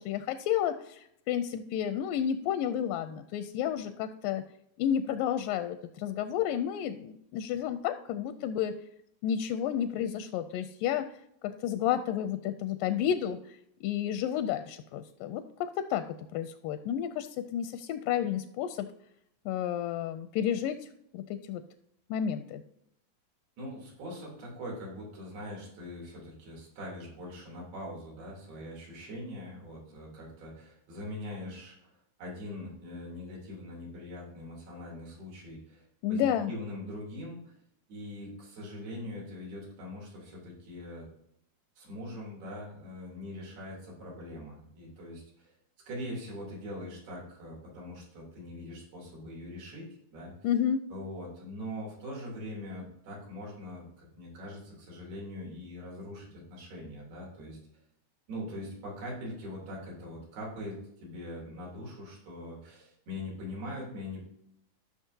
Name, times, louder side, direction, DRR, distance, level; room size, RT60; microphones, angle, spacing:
voice 1, 0.0-4.4 4.8-8.7 9.2-11.1 11.4-13.6 13.8-16.0 16.3-18.9 19.5-20.8 21.1-21.6 22.1-22.6 36.0-36.5 50.4-50.8, left 9 dB, 80° left, 10 dB, 2.0 m, -31 dB
voice 2, 23.6-31.9 32.2-37.5 37.9-41.1 41.8-45.5 45.9-50.3 50.9-57.6 58.3-64.2, left 1 dB, 85° right, -4 dB, 5.2 m, -42 dB
14.5 x 6.2 x 2.8 m, 0.76 s
omnidirectional pair, 4.3 m